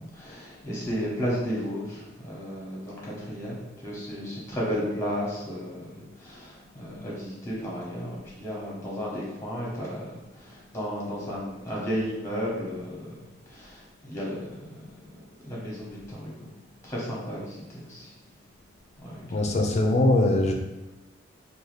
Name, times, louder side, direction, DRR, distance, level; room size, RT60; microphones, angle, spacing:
voice 1, 0.0-10.1 10.4-13.1 13.5-14.6 15.4-16.5 16.8-18.1 19.0-19.1, equal, 15° left, -5 dB, 0.9 m, -33 dB
voice 2, 19.3-20.5, left 2 dB, 35° left, 2 dB, 0.4 m, -21 dB
2.6 x 2.3 x 3.1 m, 1.1 s
head